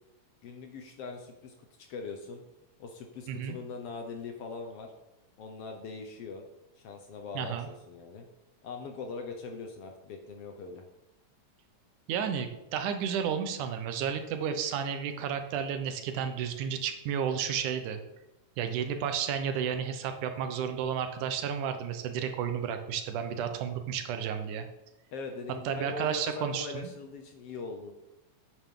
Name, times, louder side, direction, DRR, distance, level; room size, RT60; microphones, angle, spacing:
voice 1, 0.4-2.4 2.8-4.9 5.4-6.4 6.8-8.3 8.6-10.8 25.1-27.9, left 4 dB, 65° left, 4 dB, 1.6 m, -41 dB
voice 2, 7.3-7.7 12.1-18.0 18.6-24.7 25.6-26.9, right 8 dB, 85° right, 7 dB, 2.4 m, -32 dB
9.2 x 8.6 x 3.8 m, 0.93 s
omnidirectional pair, 3.4 m